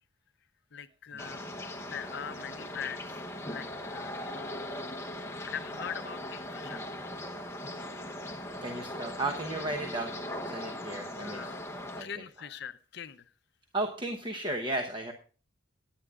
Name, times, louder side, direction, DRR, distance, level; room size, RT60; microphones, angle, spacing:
voice 1, 0.7-1.5 1.8-4.7 5.4-6.8 11.2-11.6 12.0-13.3, left 8 dB, 55° left, 11 dB, 0.6 m, -42 dB
sound 1, 1.2-12.0, left 1 dB, 15° left, 0.8 m, -39 dB
voice 2, 8.6-10.1 10.4-11.4 12.0-12.1 13.7-15.1, right 2 dB, 25° right, 3 dB, 0.9 m, -34 dB
18.0 x 9.7 x 2.4 m, 0.38 s
head